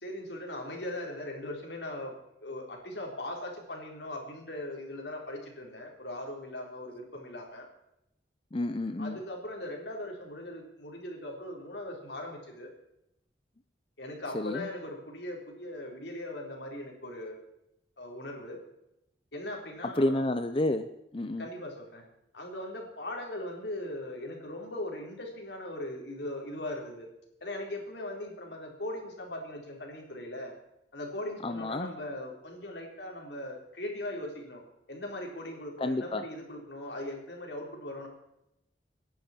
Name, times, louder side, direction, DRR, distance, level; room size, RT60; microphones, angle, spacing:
voice 1, 0.0-2.1 2.4-7.6 9.0-12.7 14.0-17.4 18.0-18.6 19.3-20.2 21.4-22.0 22.3-27.1 27.4-30.5 30.9-34.6 34.9-38.1, left 1 dB, 80° left, 1 dB, 3.9 m, -39 dB
voice 2, 8.5-9.2 14.3-14.7 19.8-20.9 21.1-21.5 31.4-31.9 35.8-36.2, left 1 dB, 30° left, 9 dB, 0.6 m, -30 dB
27.0 x 10.5 x 4.4 m, 0.85 s
head